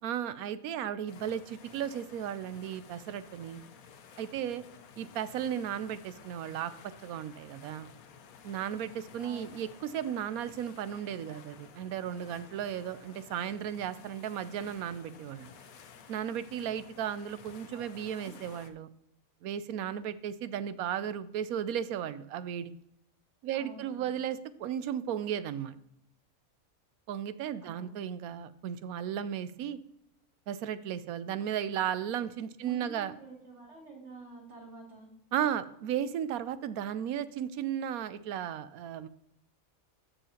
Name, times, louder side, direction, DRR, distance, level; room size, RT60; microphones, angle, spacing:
voice 1, 0.0-3.6 4.2-4.6 5.0-6.7 7.0-7.9 8.4-9.7 9.9-15.5 16.1-18.9 19.4-22.7 23.4-25.8 27.1-29.8 30.5-33.1 35.3-39.1, right 9 dB, 80° right, 14 dB, 1.0 m, -35 dB
sound 1, 1.1-18.7, left 6 dB, 75° left, 1.2 m, -54 dB
voice 2, 17.7-18.3 23.5-24.2 27.6-27.9 32.6-35.1, right 3 dB, 50° right, -4 dB, 3.0 m, -49 dB
14.5 x 5.6 x 2.8 m, 0.75 s
omnidirectional pair, 1.5 m